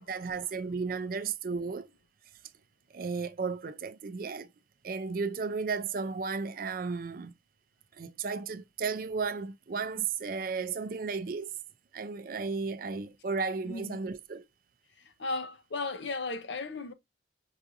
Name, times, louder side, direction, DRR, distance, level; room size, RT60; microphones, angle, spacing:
voice 1, 0.1-1.9 2.9-4.5 4.8-7.3 8.0-11.5 11.9-14.4, right 5 dB, 45° right, 0.4 m, -34 dB
voice 2, 13.6-14.0 15.0-16.9, left 3 dB, 65° left, 0.7 m, -35 dB
5.7 x 2.5 x 2.5 m
head